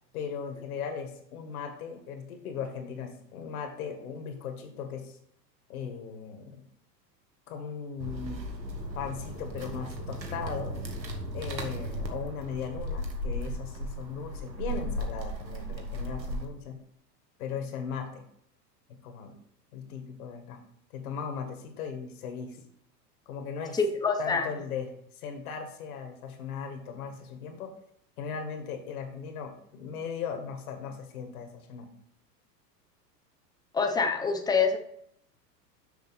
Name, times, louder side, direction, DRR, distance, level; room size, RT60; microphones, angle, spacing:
voice 1, 0.1-5.2 5.7-6.6 7.5-8.4 9.0-10.8 11.3-16.8 17.4-18.2 19.0-19.4 19.7-20.6 20.9-22.6 23.3-23.8 24.2-27.7 28.2-31.9, left 6 dB, 60° left, 6 dB, 1.8 m, -38 dB
sound 1, 8.0-16.5, equal, 90° right, 1.4 m, -36 dB
voice 2, 23.7-24.5 33.7-34.8, left 5 dB, 10° left, 4 dB, 0.9 m, -26 dB
6.8 x 6.3 x 4.3 m, 0.69 s
figure-of-eight pair, 90°, 49 cm